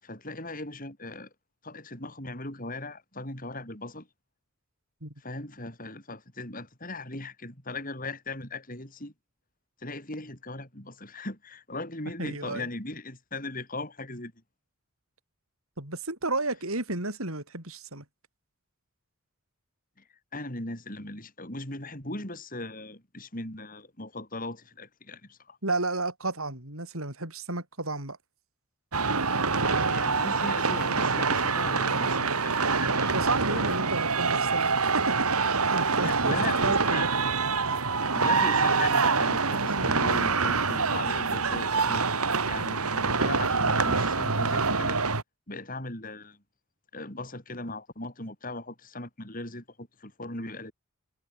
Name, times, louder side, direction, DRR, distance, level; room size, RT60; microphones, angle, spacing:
voice 1, 0.0-1.3 1.6-4.1 5.2-9.1 9.8-14.3 20.3-25.6 29.6-33.9 36.0-37.1 38.1-42.1 42.5-45.0 45.5-46.4 46.9-50.7, left 2 dB, 40° left, 7.4 m, -38 dB
voice 2, 12.2-12.7 15.8-18.0 25.6-28.2 33.1-34.7 34.9-35.1 35.6-36.4 36.6-37.1 37.6-37.8, right 2 dB, 75° right, 6.8 m, -32 dB
sound 1, 28.9-45.2, right 4 dB, 90° right, 3.1 m, -25 dB
head